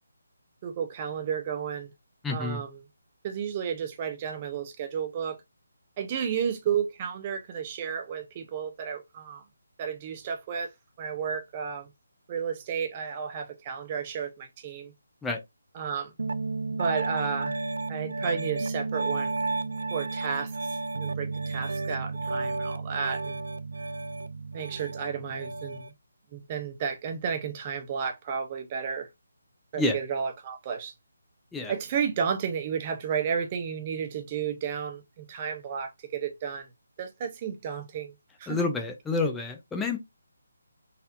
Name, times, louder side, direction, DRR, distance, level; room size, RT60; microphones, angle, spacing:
voice 1, 0.6-1.9 2.3-2.8 3.2-5.4 6.0-9.4 9.8-10.7 11.0-11.9 12.3-14.9 15.7-16.1 16.7-17.6 17.9-19.4 19.9-20.5 21.0-23.4 24.5-25.9 26.3-29.1 29.7-30.9 31.7-36.7 37.0-38.1 38.4-38.6, right 7 dB, 30° right, 0.7 m, -32 dB
voice 2, 2.2-2.6 15.2-15.4 29.8-30.0 31.5-31.7 38.5-40.0, left 3 dB, 5° left, 0.6 m, -28 dB
Piano, 16.2-25.9, right 3 dB, 70° right, 0.4 m, -32 dB
4.2 x 2.6 x 2.5 m
figure-of-eight pair, 150°, 0 cm